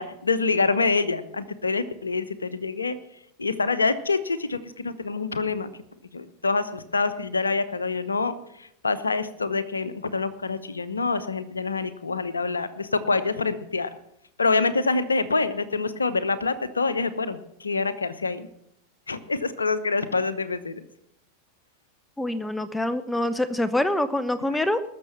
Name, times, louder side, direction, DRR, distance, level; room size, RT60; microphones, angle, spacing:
voice 1, 0.0-3.0 3.4-5.7 6.1-13.9 14.4-18.5 19.1-20.8, left 4 dB, 90° left, 14 dB, 0.8 m, -26 dB
voice 2, 22.2-24.8, left 1 dB, 5° left, 13 dB, 0.7 m, -25 dB
20.0 x 6.8 x 5.8 m, 0.76 s
hypercardioid pair, 90°, 0 cm